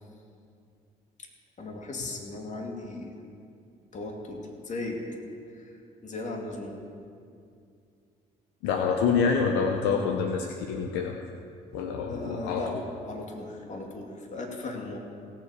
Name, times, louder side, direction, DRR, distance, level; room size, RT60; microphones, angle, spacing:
voice 1, 1.6-3.1 3.9-4.4 4.6-5.0 6.0-6.7 12.1-12.7 13.0-15.0, left 2 dB, 45° left, 1 dB, 2.3 m, -36 dB
voice 2, 8.6-11.2 11.7-12.6, left 5 dB, 80° left, 4 dB, 0.8 m, -26 dB
17.5 x 7.4 x 4.8 m, 2.4 s
hypercardioid pair, 60°, 17 cm